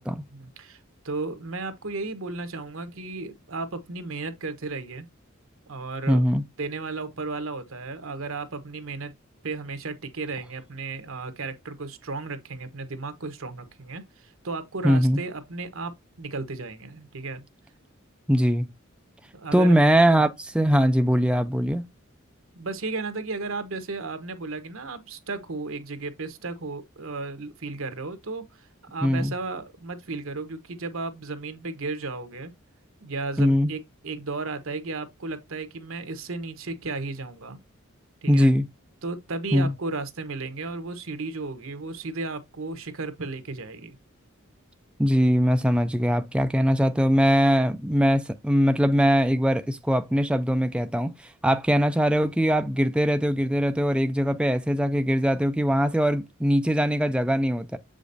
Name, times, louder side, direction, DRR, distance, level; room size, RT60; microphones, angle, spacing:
voice 1, 0.3-0.8 1.0-5.1 5.7-6.2 6.6-9.1 9.4-15.9 16.2-17.4 19.3-19.8 22.5-32.5 33.0-37.6 38.2-38.5 39.0-44.0 51.5-51.6, right 3 dB, 75° right, 1.1 m, -34 dB
voice 2, 6.1-6.4 14.8-15.2 18.3-18.7 19.5-21.8 29.0-29.3 33.4-33.7 38.3-38.7 39.5-39.7 45.0-51.1 51.4-57.8, equal, 5° right, 0.4 m, -21 dB
7.5 x 5.0 x 2.6 m
head